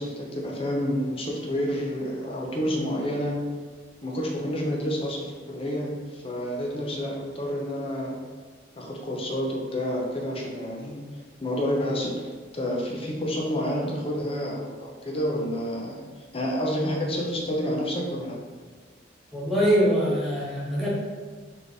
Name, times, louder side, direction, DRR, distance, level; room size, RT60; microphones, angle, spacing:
voice 1, 0.0-3.4 4.0-8.2 8.8-11.0 11.4-16.0 16.3-18.4, equal, 30° left, -1 dB, 0.6 m, -29 dB
voice 2, 19.3-20.9, equal, ahead, -8 dB, 1.2 m, -23 dB
4.1 x 3.2 x 3.3 m, 1.5 s
head